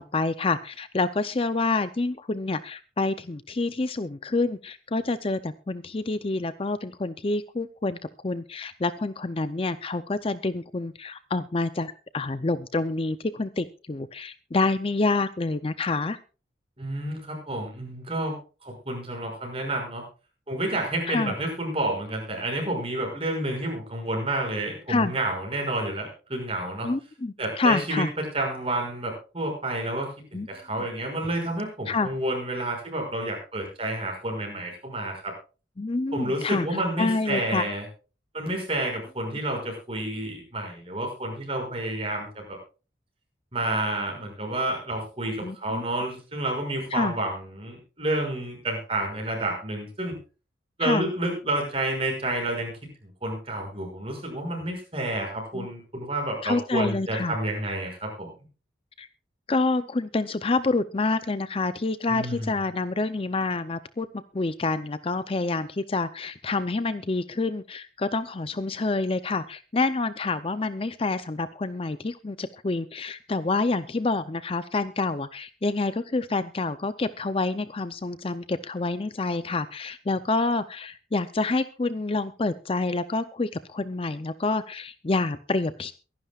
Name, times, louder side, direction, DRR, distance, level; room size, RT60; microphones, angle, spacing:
voice 1, 0.0-8.0 8.2-16.2 21.1-21.3 24.9-25.1 26.8-28.1 30.3-30.5 31.9-32.1 35.8-36.7 37.0-37.7 45.4-45.8 46.9-47.2 50.8-51.1 55.5-55.7 56.4-57.4 59.0-59.1 59.5-85.9, left 3 dB, 30° left, 13 dB, 0.5 m, -27 dB
voice 2, 16.8-20.0 20.5-26.9 27.4-35.3 36.1-37.8 38.3-42.4 43.5-50.2 50.8-52.9 53.2-58.3 62.1-62.6, right 1 dB, 30° right, 2 dB, 6.1 m, -30 dB
23.5 x 11.5 x 2.4 m, 0.34 s
head